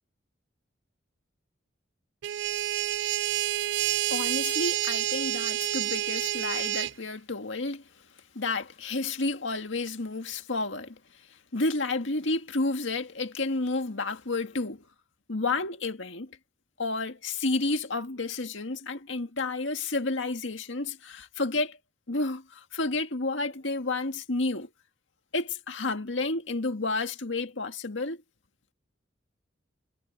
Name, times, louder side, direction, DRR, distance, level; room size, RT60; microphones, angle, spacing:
sound 1, 2.2-6.9, right 13 dB, 65° right, 0.3 m, -28 dB
voice 1, 4.1-7.8 8.4-11.0 11.5-14.9 15.3-16.4 16.8-21.8 22.1-24.7 25.3-28.2, left 3 dB, 75° left, 1.9 m, -31 dB
head